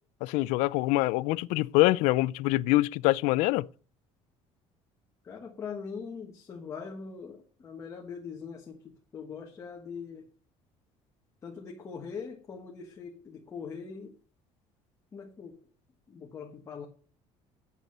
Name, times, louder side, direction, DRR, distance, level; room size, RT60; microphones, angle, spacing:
voice 1, 0.2-3.7, left 19 dB, 85° left, 0.4 m, -25 dB
voice 2, 5.2-10.3 11.4-14.1 15.1-15.6 16.1-16.9, left 6 dB, 25° left, 1.3 m, -42 dB
8.2 x 7.4 x 6.5 m
cardioid pair, 170°, 12 cm